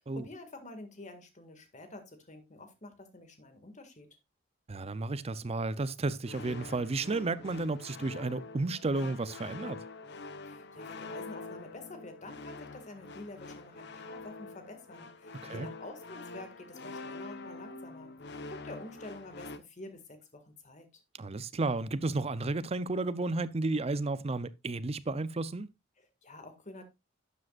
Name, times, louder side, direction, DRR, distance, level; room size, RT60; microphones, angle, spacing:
voice 1, 0.0-4.1 10.4-21.0 26.0-26.8, left 2 dB, 40° left, 2.0 m, -48 dB
voice 2, 4.7-9.8 15.4-15.7 21.2-25.7, right 3 dB, 30° right, 0.5 m, -32 dB
sound 1, 6.2-19.6, left 3 dB, 60° left, 1.0 m, -45 dB
12.0 x 7.6 x 2.4 m
head